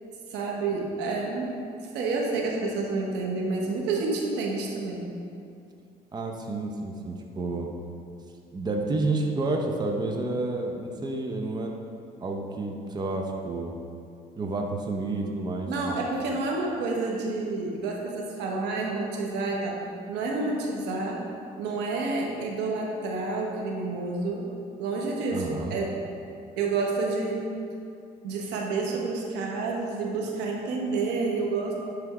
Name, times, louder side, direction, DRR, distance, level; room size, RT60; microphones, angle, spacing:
voice 1, 0.3-1.5 1.8-5.1 15.7-19.8 20.1-21.2 21.6-24.4 24.8-25.9 26.6-27.5 28.2-31.8, right 3 dB, 90° right, -1 dB, 1.2 m, -29 dB
voice 2, 6.1-7.7 8.5-11.7 12.2-13.8 14.4-16.0 25.3-25.8, right 2 dB, 25° right, 1 dB, 0.7 m, -30 dB
9.7 x 3.5 x 4.8 m, 2.6 s
cardioid pair, 110°, 17 cm